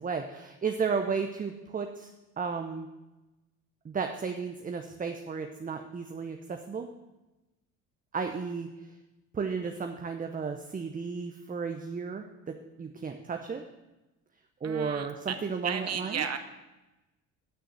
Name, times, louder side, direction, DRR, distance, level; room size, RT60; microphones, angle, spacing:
voice 1, 0.0-2.1 2.4-2.9 3.8-6.9 8.1-8.7 9.3-13.6 14.6-16.2, right 5 dB, 20° right, 5 dB, 0.7 m, -33 dB
voice 2, 14.6-15.4 15.6-16.4, right 7 dB, 35° right, 8 dB, 1.1 m, -34 dB
9.2 x 6.3 x 6.7 m, 1.0 s
hypercardioid pair, 55°, 45 cm